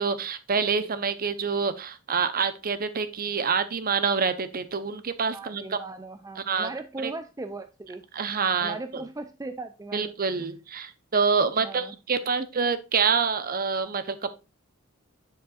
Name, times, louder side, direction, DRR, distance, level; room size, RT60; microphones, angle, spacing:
voice 1, 0.0-5.8 6.5-6.7 7.0-7.1 8.1-9.0 9.9-14.3, right 5 dB, 45° right, 12 dB, 0.8 m, -26 dB
voice 2, 5.3-8.0 8.6-10.5 11.6-11.9, right 2 dB, 15° right, 9 dB, 0.4 m, -38 dB
7.4 x 7.1 x 2.5 m, 0.29 s
head